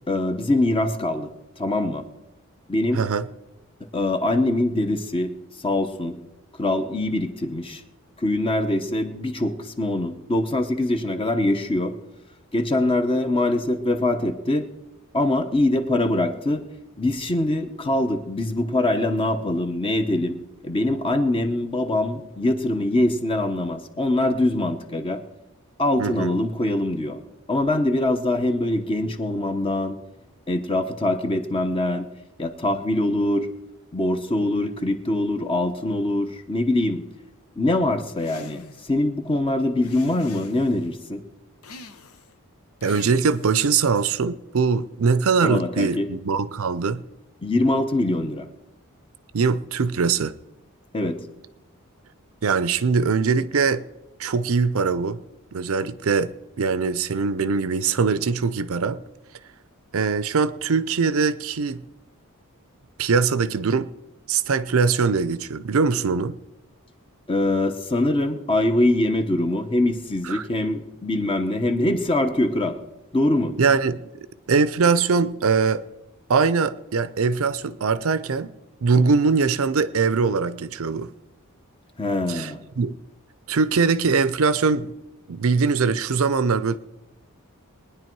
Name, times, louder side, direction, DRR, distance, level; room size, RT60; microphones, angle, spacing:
voice 1, 0.1-1.3 1.6-2.1 2.7-3.0 3.9-5.3 5.6-6.2 6.6-7.8 8.2-11.9 12.5-14.7 15.1-16.6 17.0-20.4 20.6-25.2 25.8-27.2 27.5-30.0 30.5-32.1 32.4-33.5 33.9-37.0 37.6-38.6 38.9-41.2 45.4-46.1 47.4-48.5 50.9-51.2 67.3-72.8 73.1-73.5 82.0-82.6, left 1 dB, 25° left, 0.9 m, -23 dB
voice 2, 2.9-3.2 26.0-26.3 42.8-47.0 49.3-50.3 52.4-53.8 54.2-55.2 55.5-59.0 59.9-61.8 63.0-63.9 64.3-66.4 70.2-70.4 73.6-74.1 74.5-75.8 76.3-78.5 78.8-81.1 82.3-82.5 82.8-82.9 83.5-84.9 85.3-86.8, right 5 dB, 70° right, 0.5 m, -22 dB
sound 1, 38.2-38.9 39.8-40.9 41.6-42.3 42.8-43.6, left 3 dB, 80° left, 1.0 m, -43 dB
21.0 x 9.9 x 4.6 m
head